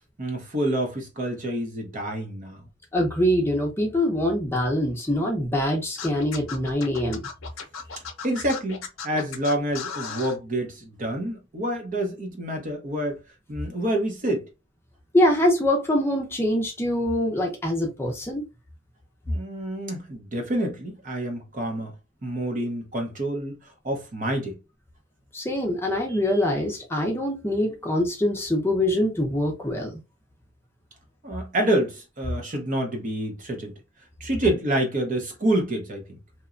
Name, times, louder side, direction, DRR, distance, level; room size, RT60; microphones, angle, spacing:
voice 1, 0.2-2.6 8.0-13.2 13.5-14.5 19.3-21.9 22.2-23.6 23.8-24.6 31.2-33.8 34.2-36.0, right 1 dB, 40° right, 0.7 m, -27 dB
voice 2, 2.9-7.3 15.1-18.4 25.3-30.0, left 1 dB, 10° left, 0.6 m, -24 dB
Scratching (performance technique), 6.0-10.4, left 6 dB, 80° left, 0.6 m, -35 dB
2.9 x 2.2 x 2.4 m
head